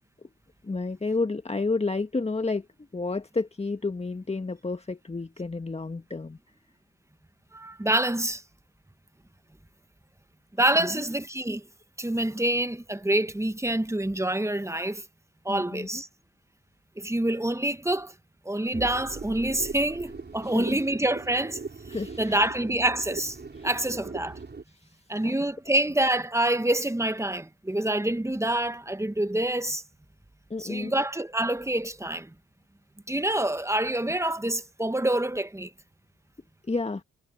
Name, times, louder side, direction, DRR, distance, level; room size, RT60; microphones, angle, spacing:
voice 1, 0.6-2.6 2.9-6.4 10.8-11.0 15.5-16.0 20.4-20.8 21.9-22.5 23.5-23.7 24.7-25.3 30.5-30.9 36.7-37.0, left 3 dB, 20° left, 1.7 m, -31 dB
voice 2, 7.5-8.4 10.6-11.6 12.0-15.0 15.4-16.1 17.0-18.1 18.4-21.6 22.2-23.4 23.6-24.4 25.1-29.8 30.6-32.3 33.1-35.7, right 1 dB, 10° right, 1.6 m, -26 dB
sound 1, 18.7-24.6, right 4 dB, 35° right, 5.4 m, -40 dB
hypercardioid pair, 45°, 30 cm